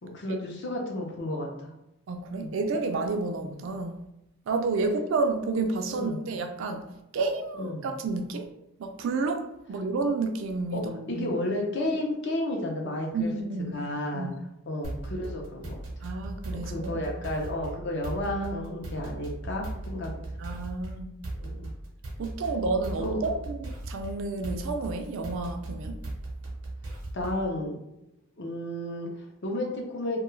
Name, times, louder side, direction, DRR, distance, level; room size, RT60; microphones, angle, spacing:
voice 1, 0.0-1.7 2.4-2.5 5.9-6.2 7.5-7.9 10.7-10.8 11.1-13.3 13.7-14.3 14.7-15.8 16.5-20.1 21.3-21.7 23.0-23.3 27.1-27.8 28.4-30.2, left 1 dB, 50° left, 0 dB, 0.5 m, -32 dB
voice 2, 2.1-4.0 4.5-6.9 7.1-8.5 8.8-11.3 13.1-13.7 14.1-14.3 16.0-17.3 20.4-21.1 22.2-26.0, right 3 dB, 60° right, 6 dB, 0.3 m, -30 dB
sound 1, 14.8-27.5, right 2 dB, 85° right, 0.8 m, -38 dB
2.2 x 2.2 x 3.1 m, 0.88 s
head